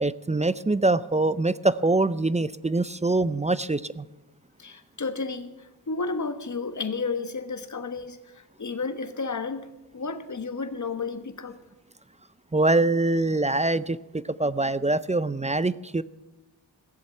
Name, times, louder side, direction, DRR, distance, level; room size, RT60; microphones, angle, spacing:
voice 1, 0.0-4.0 12.5-16.0, right 2 dB, 20° right, 17 dB, 0.4 m, -24 dB
voice 2, 4.6-9.7 9.9-11.6, left 4 dB, 45° left, 10 dB, 1.3 m, -32 dB
16.0 x 7.3 x 9.0 m, 1.0 s
cardioid pair, 55°, 40 cm